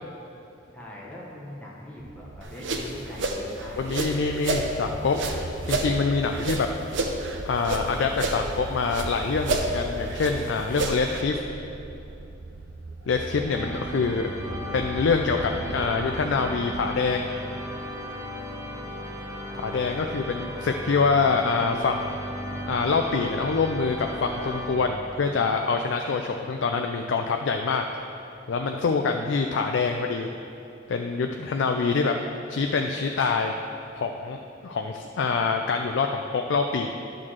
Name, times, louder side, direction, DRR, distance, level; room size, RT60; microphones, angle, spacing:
voice 1, 0.7-4.2 13.3-14.4 19.5-19.6, left 1 dB, 5° left, -5 dB, 1.0 m, -43 dB
sound 1, 2.0-16.9, right 3 dB, 50° right, 0.3 m, -40 dB
sound 2, 2.4-4.7 5.1-7.9 8.1-9.1 9.4-11.2, right 2 dB, 75° right, 0.8 m, -29 dB
voice 2, 3.8-5.2 5.7-6.7 7.4-11.4 13.1-14.3 14.7-17.3 19.6-22.1 22.7-27.8 28.5-30.3 30.9-32.2 32.5-33.5 33.9-36.9, left 4 dB, 75° left, 4 dB, 0.4 m, -25 dB
sound 3, 13.5-25.4, equal, 15° right, 0.7 m, -35 dB
10.5 x 3.9 x 6.3 m, 2.8 s
head